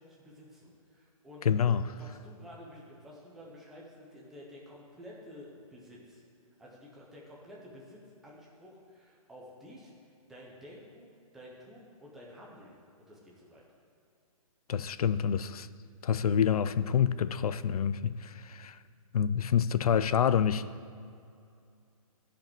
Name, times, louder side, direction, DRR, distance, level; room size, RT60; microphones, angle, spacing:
voice 1, 0.0-1.7 2.0-6.2 6.6-9.9 10.3-13.6, equal, ahead, -4 dB, 0.5 m, -51 dB
voice 2, 1.4-1.8 14.7-15.7 16.0-18.8 19.1-20.7, left 8 dB, 80° left, 15 dB, 0.5 m, -27 dB
10.5 x 5.1 x 7.5 m, 2.4 s
hypercardioid pair, 175°, 19 cm